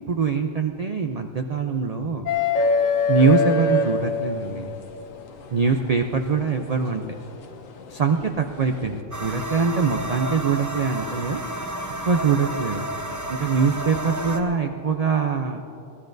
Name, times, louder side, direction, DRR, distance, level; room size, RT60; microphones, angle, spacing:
voice 1, 0.0-2.2 3.1-4.8 5.5-7.0 7.9-11.4 12.1-12.8 13.3-15.6, right 5 dB, 50° right, 4 dB, 0.5 m, -23 dB
sound 1, 2.3-4.7 6.3-6.4 8.2-8.4, left 3 dB, 85° left, 1.3 m, -21 dB
sound 2, 9.1-14.4, right 1 dB, 15° right, 0.8 m, -31 dB
23.5 x 16.5 x 2.6 m, 2.8 s
omnidirectional pair, 1.3 m